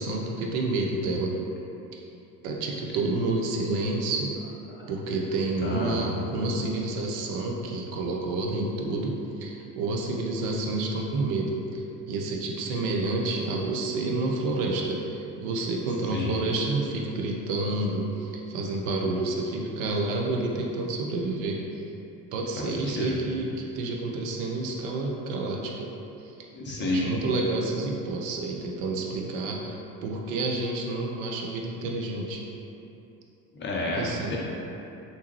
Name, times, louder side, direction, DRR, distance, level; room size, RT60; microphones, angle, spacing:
voice 1, 0.0-1.4 2.4-4.3 4.9-21.6 22.3-25.9 26.2-26.3 26.8-32.4 33.9-34.4, right 2 dB, 55° right, 0 dB, 0.6 m, -29 dB
voice 2, 5.6-6.1 16.1-16.3 22.8-23.2 26.5-27.1 33.6-34.4, left 2 dB, 25° left, -4 dB, 0.5 m, -30 dB
3.4 x 2.7 x 3.0 m, 2.9 s
figure-of-eight pair, 65°, 49 cm